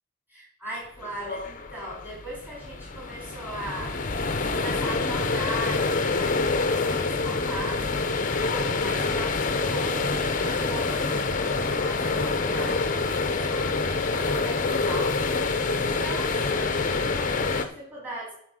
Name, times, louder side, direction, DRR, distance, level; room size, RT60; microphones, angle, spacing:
voice 1, 0.3-4.0 4.3-8.0 8.4-18.3, right 1 dB, 10° right, -5 dB, 4.1 m, -39 dB
sound 1, 1.0-17.6, left 3 dB, 35° left, 0.7 m, -26 dB
12.0 x 4.6 x 6.4 m, 0.71 s
head